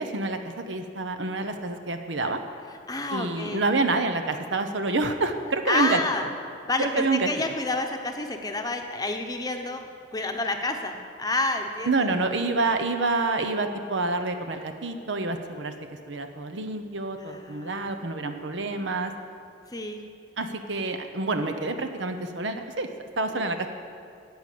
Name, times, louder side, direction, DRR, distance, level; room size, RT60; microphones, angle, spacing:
voice 1, 0.0-2.4 3.1-6.0 6.8-7.3 11.9-15.7 16.1-19.1 20.4-22.9 23.2-23.7, right 3 dB, 75° right, 7 dB, 0.9 m, -27 dB
voice 2, 2.9-3.6 5.7-6.3 6.7-12.1 17.2-17.9 19.7-20.0, left 2 dB, 20° left, 4 dB, 0.9 m, -29 dB
11.5 x 8.1 x 8.5 m, 2.3 s
head